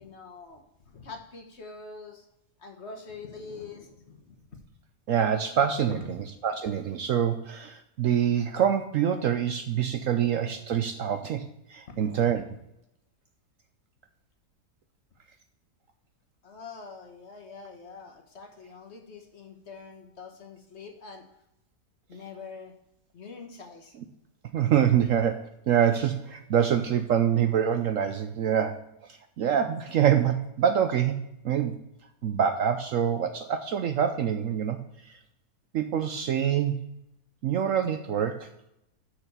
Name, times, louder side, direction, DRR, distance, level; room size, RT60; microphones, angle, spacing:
voice 1, 0.0-2.2 2.6-4.4 6.0-6.1 11.9-12.1 16.4-21.2 22.1-22.7 23.1-23.9, left 4 dB, 45° left, 3 dB, 1.4 m, -44 dB
voice 2, 5.1-12.5 24.5-28.9 29.4-31.2 31.4-31.7 32.2-34.8 35.0-35.1 35.7-36.8 37.4-38.5, right 9 dB, 65° right, 8 dB, 0.9 m, -25 dB
6.7 x 6.1 x 6.6 m, 0.83 s
omnidirectional pair, 1.7 m